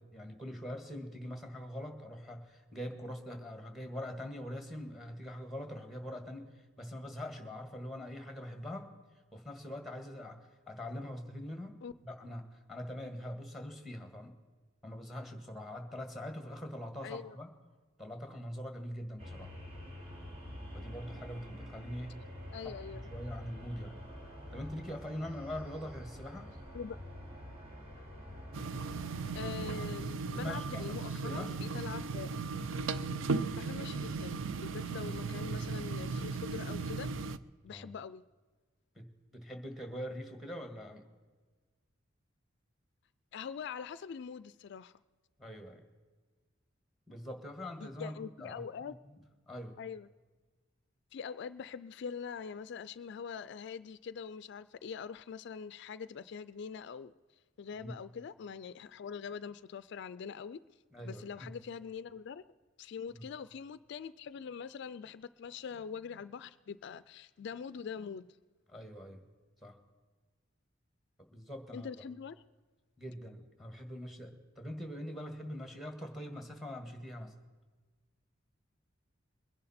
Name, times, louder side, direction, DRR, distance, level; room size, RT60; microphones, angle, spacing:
voice 1, 0.0-8.9 9.3-14.3 14.8-17.5 18.0-19.5 20.7-22.2 22.6-24.0 24.5-26.5 30.3-31.5 37.7-37.9 38.9-41.0 45.4-45.8 47.1-49.2 49.5-49.8 57.8-57.9 60.9-61.6 63.1-63.3 68.7-69.2 69.6-69.8 71.2-71.9 73.0-77.3, left 1 dB, ahead, 5 dB, 1.7 m, -43 dB
voice 2, 17.0-17.4 22.5-23.1 26.7-27.0 29.3-32.3 33.5-37.1 37.6-38.2 43.3-44.9 47.8-49.0 49.8-50.1 51.1-57.1 57.6-60.6 61.0-62.4 62.8-68.3 71.7-72.4, left 6 dB, 65° left, 15 dB, 0.4 m, -43 dB
sound 1, 19.2-29.9, equal, 30° right, 2.8 m, -47 dB
sound 2, 28.5-37.4, right 4 dB, 80° right, 0.5 m, -36 dB
22.5 x 10.5 x 4.3 m, 1.4 s
head